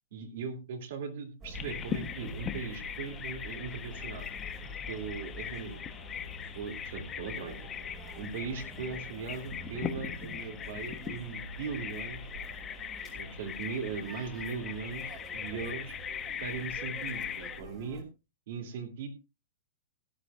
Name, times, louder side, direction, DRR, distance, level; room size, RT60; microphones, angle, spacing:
voice 1, 0.1-4.3 4.9-5.8 6.5-7.7 8.2-12.3 13.1-15.9 16.4-18.1 18.5-19.1, right 5 dB, 50° right, 6 dB, 2.5 m, -39 dB
sound 1, 1.4-18.0, left 1 dB, 20° right, 2.4 m, -46 dB
Bird vocalization bird call bird song, 1.5-17.6, left 8 dB, 15° left, 0.8 m, -40 dB
17.0 x 11.5 x 2.3 m, 0.28 s
hypercardioid pair, 175°, 0 cm